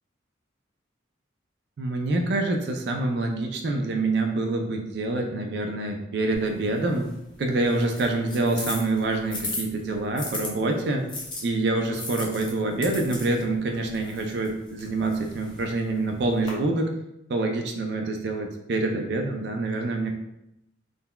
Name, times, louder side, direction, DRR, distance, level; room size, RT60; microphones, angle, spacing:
voice 1, 1.8-7.1 7.4-11.0 11.4-16.9 17.3-20.1, right 2 dB, 60° right, 3 dB, 0.4 m, -26 dB
sound 1, 6.3-10.5 11.1-16.5, left 2 dB, 25° left, 0.5 m, -38 dB
3.7 x 2.1 x 2.2 m, 0.83 s
head